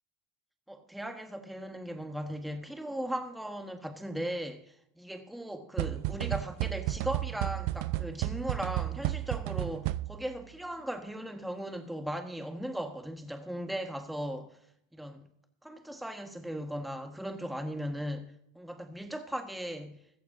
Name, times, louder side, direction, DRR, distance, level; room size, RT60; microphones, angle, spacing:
voice 1, 0.7-14.6 14.9-15.3 15.6-18.3 18.5-20.0, right 1 dB, ahead, 1.5 m, -38 dB
sound 1, 5.8-10.4, right 16 dB, 75° right, 0.6 m, -33 dB
15.0 x 15.0 x 2.7 m
supercardioid pair, 85°, 46 cm